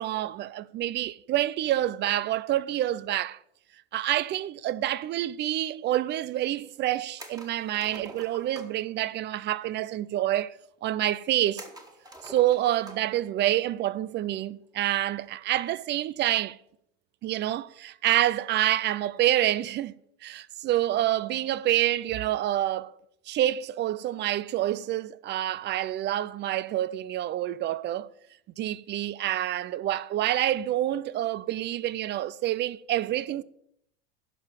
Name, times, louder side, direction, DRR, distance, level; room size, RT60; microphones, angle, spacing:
voice 1, 0.0-3.4 3.9-10.5 10.8-11.7 12.2-16.6 17.2-19.9 20.2-22.9 23.3-28.1 28.6-33.4, right 13 dB, 35° right, 0.4 m, -27 dB
sound 1, 7.2-8.8 11.6-13.2 13.5-13.6 15.2-15.5, right 1 dB, 10° right, 1.9 m, -46 dB
11.0 x 5.7 x 7.4 m
supercardioid pair, 100°, 31 cm